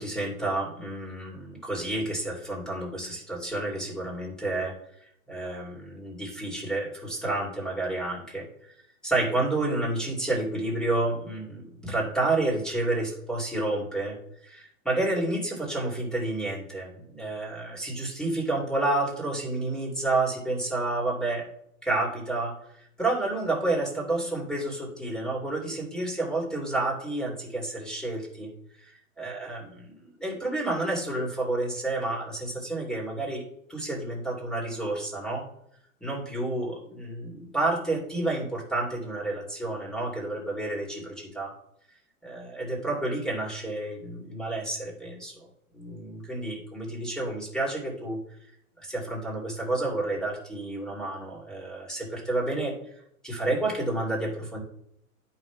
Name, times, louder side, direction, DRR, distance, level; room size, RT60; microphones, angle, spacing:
voice 1, 0.0-4.7 5.3-8.5 9.0-14.2 14.4-21.4 21.8-22.5 23.0-28.5 28.8-33.4 33.7-35.4 36.0-41.5 42.2-45.5 45.7-48.2 48.8-52.7 53.2-54.6, right 2 dB, ahead, -3 dB, 2.7 m, -30 dB
11.5 x 5.7 x 2.3 m, 0.74 s
hypercardioid pair, 110°, 42 cm